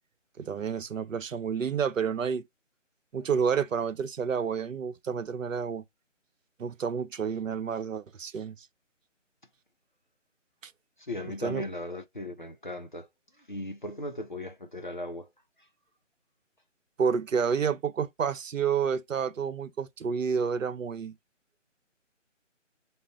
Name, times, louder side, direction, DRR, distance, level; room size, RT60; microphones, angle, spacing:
voice 1, 0.4-2.4 3.1-5.8 6.6-8.7 10.6-10.7 11.4-11.6 17.0-21.2, right 6 dB, 85° right, 0.7 m, -29 dB
voice 2, 11.0-13.1 13.4-15.3, left 1 dB, 40° left, 0.4 m, -37 dB
3.8 x 2.1 x 3.7 m
hypercardioid pair, 170°, 38 cm